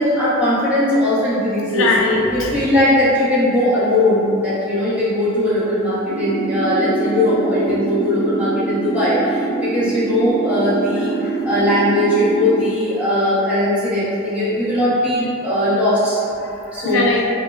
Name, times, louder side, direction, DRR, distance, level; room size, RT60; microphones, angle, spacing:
voice 1, 0.0-1.9 2.3-11.1 11.4-16.2 16.7-17.1, left 1 dB, 5° right, -11 dB, 0.8 m, -19 dB
voice 2, 1.7-2.6 11.2-11.4 16.4-17.2, left 3 dB, 65° left, 0 dB, 0.4 m, -21 dB
sound 1, 6.1-12.6, right 4 dB, 60° right, 0.8 m, -24 dB
4.4 x 2.1 x 2.3 m, 2.7 s
head